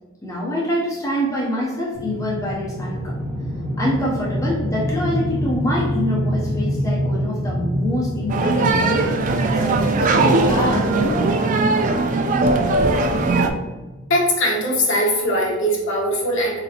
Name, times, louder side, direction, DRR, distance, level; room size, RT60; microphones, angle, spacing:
voice 1, 0.2-3.2 3.8-9.1 9.5-11.2, left 1 dB, 15° left, -5 dB, 0.6 m, -25 dB
sound 1, 1.9-14.2, equal, 10° right, 1.4 m, -27 dB
sound 2, 8.3-13.5, right 3 dB, 35° right, 0.3 m, -19 dB
voice 2, 14.1-16.6, equal, 55° left, -2 dB, 1.0 m, -20 dB
4.0 x 3.7 x 2.8 m, 1.2 s
head